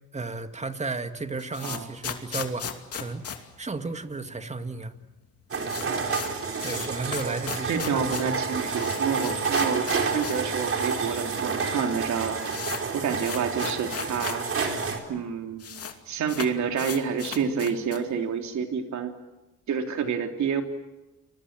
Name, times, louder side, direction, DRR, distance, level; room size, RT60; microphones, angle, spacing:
voice 1, 0.1-3.3 3.6-4.9 6.6-8.1, right 3 dB, 20° right, 8 dB, 2.0 m, -33 dB
sound 1, 1.1-4.4 4.6-4.7 5.0-5.1 5.4-10.5 10.8-10.9 11.6-11.7 12.0-14.7 14.9-15.0 15.2-16.0 16.3-18.2, left 7 dB, 50° left, 2.6 m, -37 dB
sound 2, 5.5-15.0, right 5 dB, 45° right, 4.3 m, -29 dB
voice 2, 7.7-12.4 12.9-14.4 15.1-15.7 16.1-19.1 19.7-20.6, right 6 dB, 70° right, 4 dB, 3.3 m, -28 dB
30.0 x 22.0 x 7.5 m, 1.1 s
cardioid pair, 90°, 30 cm